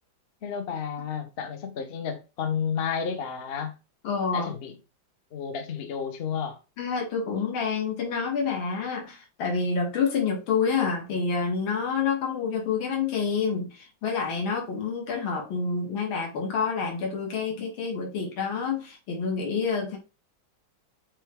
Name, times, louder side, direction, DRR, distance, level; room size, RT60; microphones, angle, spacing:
voice 1, 0.4-3.7 4.3-4.7 5.3-6.6, left 7 dB, 70° left, 0.5 m, -31 dB
voice 2, 4.0-4.5 6.8-20.0, left 5 dB, 90° left, 2.0 m, -28 dB
6.0 x 2.3 x 3.5 m
omnidirectional pair, 2.1 m